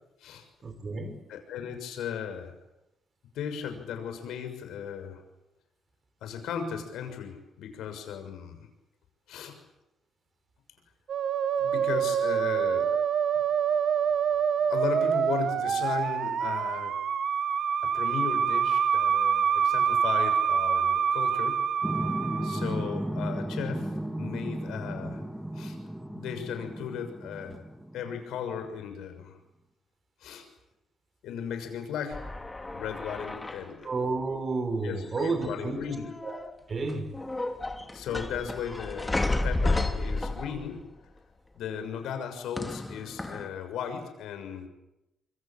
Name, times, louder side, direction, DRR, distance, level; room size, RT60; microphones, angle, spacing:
voice 1, 0.6-1.2 33.8-35.8 36.2-36.4 36.7-37.1, right 3 dB, 40° right, 8 dB, 6.4 m, -31 dB
voice 2, 1.3-2.6 3.3-5.2 6.2-8.7 9.3-9.6 11.6-13.0 14.7-16.9 17.8-21.6 22.4-25.2 25.5-25.8 26.1-27.6 27.9-29.4 30.2-30.4 31.2-32.2 32.7-33.9 34.8-36.1 37.9-40.8 41.5-44.7, left 8 dB, 85° left, 7 dB, 6.4 m, -36 dB
Musical instrument, 11.1-22.9, right 7 dB, 60° right, 1.6 m, -26 dB
sound 1, 21.8-28.4, right 1 dB, 5° right, 2.2 m, -34 dB
sound 2, 32.1-33.8 35.0-35.6 35.9-36.5 36.9-40.8 42.6-43.5, left 2 dB, 15° left, 2.9 m, -32 dB
26.5 x 25.0 x 8.8 m, 0.90 s
cardioid pair, 90°, 0 cm